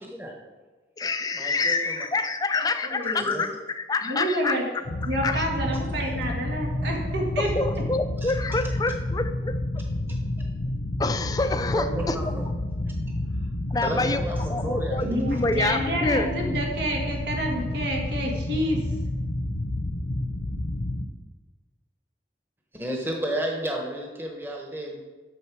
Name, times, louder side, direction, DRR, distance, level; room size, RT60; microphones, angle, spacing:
voice 1, 0.0-0.4 1.3-2.1 3.2-3.5 8.2-8.3 8.6-8.7 10.1-10.2 11.7-12.4 13.8-15.0 22.7-25.0, right 1 dB, 10° right, 0 dB, 1.1 m, -32 dB
voice 2, 1.0-4.6 5.2-5.4 7.4-9.5 11.0-12.3 13.7-14.2 14.5-16.3, left 3 dB, 20° left, 9 dB, 0.4 m, -27 dB
voice 3, 2.9-3.5 4.0-4.6 5.0-7.5 15.0-18.8, right 1 dB, 80° right, 0 dB, 1.7 m, -29 dB
sound 1, 4.8-21.0, left 1 dB, 65° left, 0.8 m, -30 dB
8.6 x 6.5 x 4.7 m, 1.3 s
head